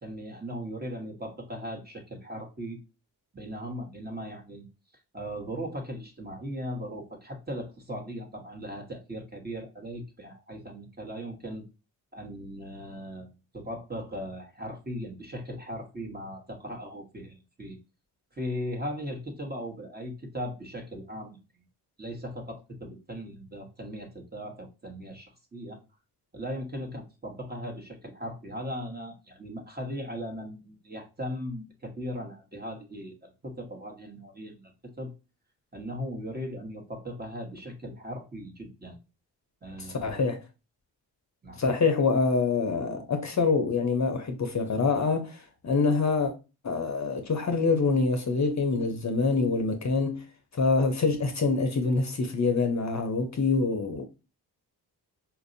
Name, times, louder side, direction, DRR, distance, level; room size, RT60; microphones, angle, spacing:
voice 1, 0.0-2.8 3.3-4.7 5.1-11.6 12.1-17.8 18.3-21.4 22.0-25.8 26.3-34.7 35.0-35.1 35.7-39.0 39.6-40.2 41.4-41.6, equal, 20° right, 1.2 m, -38 dB
voice 2, 40.0-40.4 41.6-46.3 46.6-50.2 50.5-54.0, left 4 dB, 40° left, 0.7 m, -25 dB
4.2 x 2.6 x 2.6 m
cardioid pair, 65°, 43 cm